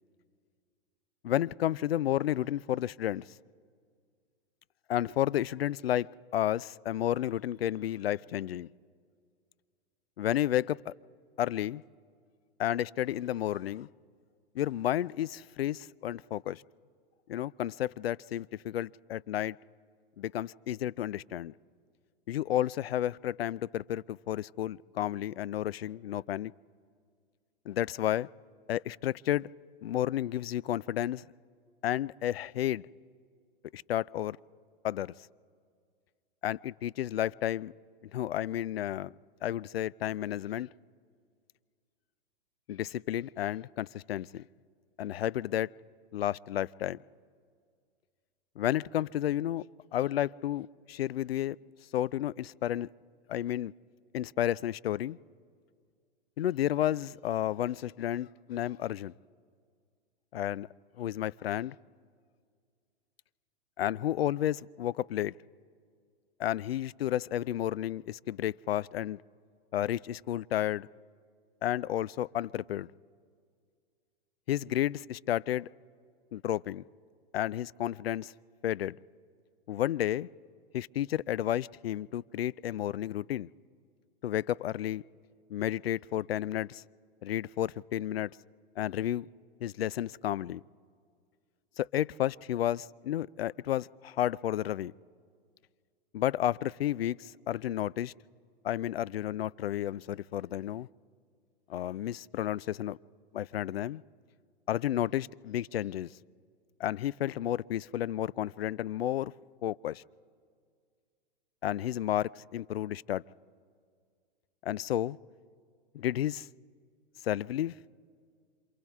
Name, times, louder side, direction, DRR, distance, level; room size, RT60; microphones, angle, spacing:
voice 1, 1.2-3.2 4.9-8.7 10.2-10.9 11.4-11.8 12.6-13.9 14.5-16.6 17.3-19.6 20.2-21.5 22.3-26.5 27.7-28.3 28.7-29.5 29.8-31.3 31.8-32.9 33.7-34.4 34.8-35.1 36.4-37.7 38.1-39.1 39.4-40.7 42.7-44.4 45.0-45.7 46.1-47.0 48.6-49.6 49.9-51.6 51.9-52.9 53.3-53.7 54.1-55.2 56.4-59.1 60.3-60.7 61.0-61.7 63.8-65.3 66.4-69.2 69.7-70.9 71.6-72.9 74.5-75.7 76.3-76.8 77.3-78.3 78.6-79.0 79.7-80.3 80.7-83.5 84.2-85.0 85.5-86.8 87.2-88.3 88.8-89.3 89.6-90.6 91.8-94.9 96.1-98.1 98.6-100.9 101.7-103.0 103.3-104.0 104.7-106.1 106.8-109.3 109.6-110.0 111.6-113.2 114.6-115.2 115.9-116.5 117.2-117.7, left 12 dB, 80° left, 0.5 m, -31 dB
27.5 x 27.0 x 3.6 m
hypercardioid pair, 120°, 30 cm